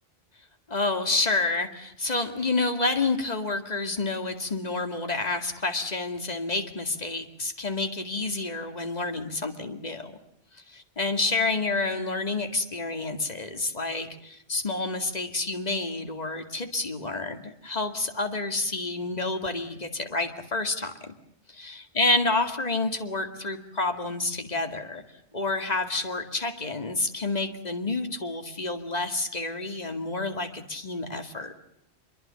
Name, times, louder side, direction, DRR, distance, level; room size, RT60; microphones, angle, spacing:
voice 1, 0.7-10.2 10.7-20.9 21.5-25.0 25.3-31.6, left 3 dB, 40° left, 7 dB, 2.3 m, -29 dB
27.0 x 22.5 x 6.9 m, 0.78 s
omnidirectional pair, 1.1 m